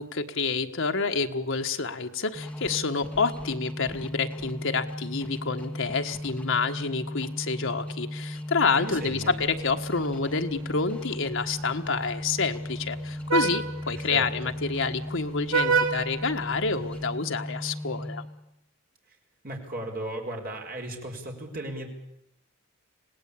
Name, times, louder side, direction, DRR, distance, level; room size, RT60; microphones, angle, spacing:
voice 1, 0.0-18.2, left 4 dB, 60° left, 5 dB, 1.5 m, -28 dB
sound 1, 2.3-18.5, left 1 dB, 5° left, 2.1 m, -36 dB
voice 2, 8.7-9.4 13.9-14.3 19.4-21.9, right 1 dB, 45° right, 2 dB, 4.8 m, -36 dB
Vehicle horn car horn honking, 9.0-17.1, right 4 dB, 70° right, 2.4 m, -32 dB
26.5 x 18.0 x 8.7 m, 0.81 s
head